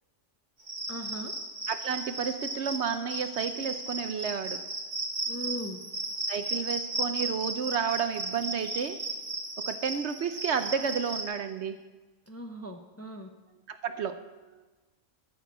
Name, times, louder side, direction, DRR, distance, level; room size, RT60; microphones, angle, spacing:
Cricket, 0.6-11.2, right 2 dB, 35° right, 2.0 m, -35 dB
voice 1, 0.9-1.3 5.2-5.8 12.3-13.3, right 1 dB, 15° left, 5 dB, 0.7 m, -39 dB
voice 2, 1.7-4.6 6.3-9.0 9.7-11.8 13.7-14.6, right 7 dB, 65° right, 10 dB, 0.9 m, -31 dB
13.5 x 6.3 x 8.3 m, 1.2 s
omnidirectional pair, 1.4 m